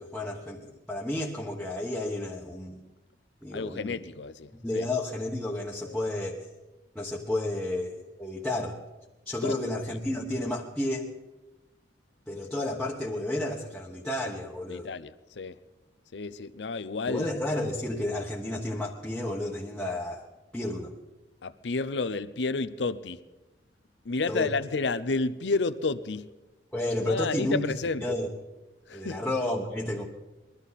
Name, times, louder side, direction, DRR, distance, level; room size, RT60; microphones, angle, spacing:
voice 1, 0.0-2.8 3.4-4.0 4.6-6.4 6.9-8.8 9.3-11.1 12.3-14.9 17.1-20.2 20.5-20.9 24.3-24.5 26.7-27.6 28.0-28.3 28.9-30.0, left 1 dB, 5° left, 1.2 m, -31 dB
voice 2, 3.5-4.9 5.8-6.0 9.4-9.6 14.7-15.6 16.1-17.3 21.4-23.2 24.0-26.3 27.0-28.1 28.9-29.2, left 3 dB, 85° left, 0.6 m, -31 dB
21.5 x 13.0 x 4.2 m
head